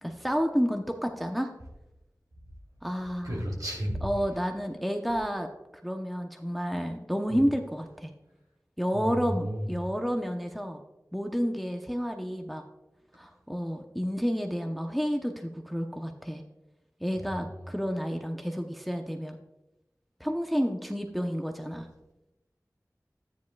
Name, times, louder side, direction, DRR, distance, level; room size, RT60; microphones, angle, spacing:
voice 1, 0.0-1.5 2.8-3.4 4.0-5.5 5.8-8.1 8.8-10.8 11.1-12.6 13.1-16.4 17.0-19.4 20.2-21.9, equal, ahead, 4 dB, 0.8 m, -30 dB
voice 2, 3.2-4.0 7.3-7.4 8.9-9.7 17.2-17.6, equal, 70° right, -3 dB, 3.3 m, -33 dB
13.0 x 9.5 x 2.3 m, 0.96 s
wide cardioid pair, 45°, 6 cm